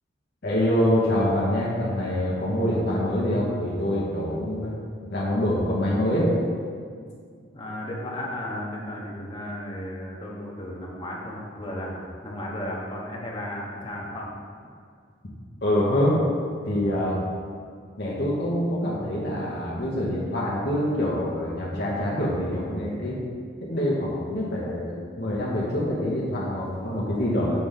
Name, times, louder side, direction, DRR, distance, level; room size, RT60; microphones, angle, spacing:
voice 1, 0.4-4.7 5.1-6.3 15.6-16.2 16.6-17.2 18.0-23.2 23.6-27.6, left 1 dB, 55° left, -6 dB, 1.2 m, -25 dB
voice 2, 7.5-14.4, left 1 dB, 25° left, -3 dB, 1.1 m, -34 dB
6.9 x 3.4 x 5.7 m, 2.1 s
head